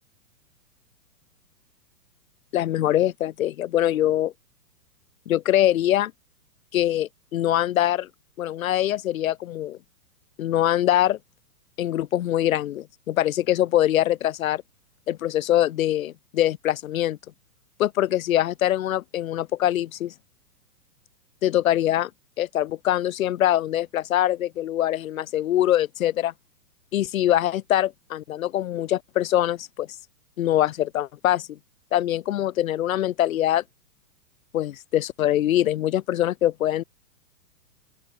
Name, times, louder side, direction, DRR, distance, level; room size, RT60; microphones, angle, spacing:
voice 1, 2.5-4.3 5.3-6.1 6.7-8.1 8.4-9.8 10.4-11.2 11.8-14.6 15.1-17.2 17.8-20.1 21.4-22.1 22.4-26.3 26.9-29.9 30.4-31.6 31.9-33.6 34.5-36.8, left 12 dB, 60° left, 1.0 m, -23 dB
open air
hypercardioid pair, 165°, 47 cm